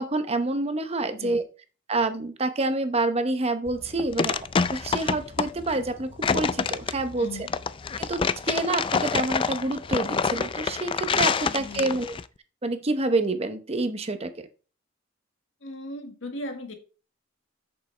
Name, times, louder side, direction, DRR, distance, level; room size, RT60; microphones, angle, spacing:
voice 1, 0.0-1.4 1.9-4.4 4.7-7.5 8.0-12.1 12.6-14.3, right 2 dB, 30° right, 9 dB, 0.8 m, -27 dB
sound 1, 3.7-12.2, left 5 dB, 25° left, 0.3 m, -27 dB
voice 2, 7.2-7.5 11.5-12.0 15.6-16.7, left 1 dB, 85° left, 5 dB, 1.6 m, -38 dB
7.9 x 6.7 x 3.3 m, 0.36 s
head